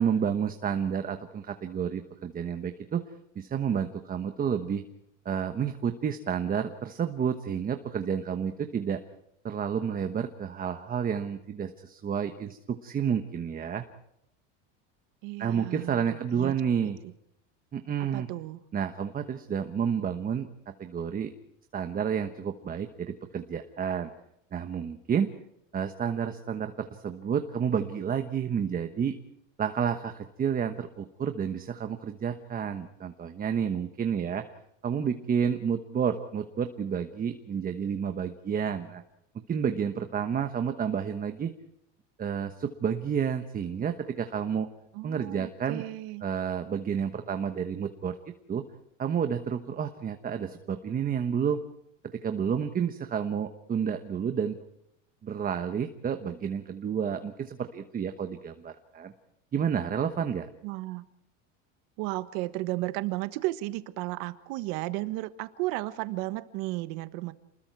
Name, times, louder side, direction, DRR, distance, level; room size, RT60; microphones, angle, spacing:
voice 1, 0.0-3.0 3.3-4.8 5.2-9.0 9.4-13.8 15.4-17.0 17.7-18.3 18.7-21.3 21.7-24.1 24.5-25.3 25.7-29.2 29.6-34.4 34.8-39.0 39.5-41.5 42.2-44.7 45.0-45.8 46.2-48.2 48.5-48.6 49.0-51.6 52.1-54.6 55.2-59.1 59.5-60.5, right 7 dB, 25° right, 7 dB, 1.1 m, -30 dB
voice 2, 15.2-16.5 17.0-17.1 18.0-18.6 44.9-46.2 60.6-61.0 62.0-67.3, right 19 dB, 65° right, 12 dB, 1.5 m, -34 dB
28.5 x 21.0 x 4.7 m, 0.81 s
supercardioid pair, 135°, 38 cm